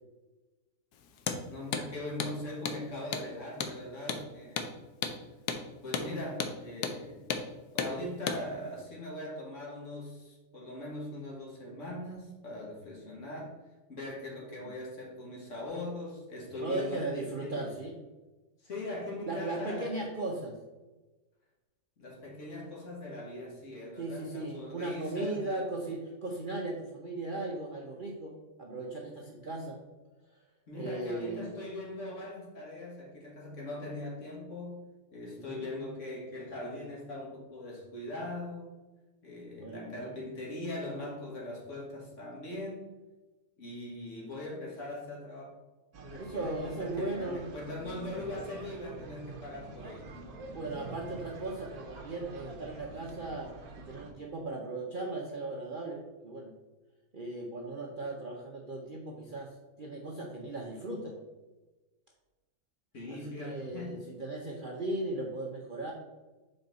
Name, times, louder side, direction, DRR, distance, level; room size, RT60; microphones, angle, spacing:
Hammer, 1.2-1.4 1.7-1.9 2.2-2.3 2.7-2.8 3.1-3.3 3.6-3.8 4.1-4.2 4.6-4.7 5.0-5.2 5.5-5.6 5.9-6.1 6.4-6.6 6.8-7.0 7.3-7.5 7.8-7.9 8.3-8.4, left 6 dB, 85° left, 1.2 m, -33 dB
voice 1, 1.5-4.7 5.8-7.3 7.7-13.6 13.9-17.7 18.6-20.0 22.0-25.7 30.7-38.7 39.2-42.9 43.6-45.6 46.0-50.1 62.9-64.0, left 1 dB, 50° left, -2 dB, 1.9 m, -41 dB
voice 2, 16.6-17.9 19.3-20.6 24.0-29.8 30.7-31.5 35.4-35.7 39.6-40.1 46.2-47.5 50.5-56.5 57.1-61.1 63.1-65.9, right 2 dB, 45° right, -1 dB, 0.7 m, -37 dB
sound 1, 45.9-54.1, right 3 dB, 70° right, 1.3 m, -47 dB
6.9 x 4.4 x 4.0 m, 1.2 s
omnidirectional pair, 1.7 m